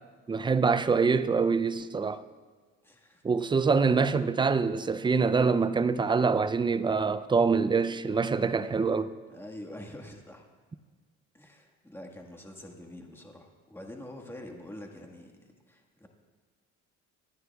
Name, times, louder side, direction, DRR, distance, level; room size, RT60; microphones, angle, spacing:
voice 1, 0.3-2.2 3.2-9.1, right 5 dB, 15° right, 0.4 m, -25 dB
voice 2, 2.8-3.2 9.3-10.5 11.3-15.3 15.7-16.1, left 1 dB, 5° left, 1.5 m, -45 dB
27.5 x 9.5 x 2.3 m
cardioid pair, 105°, 31 cm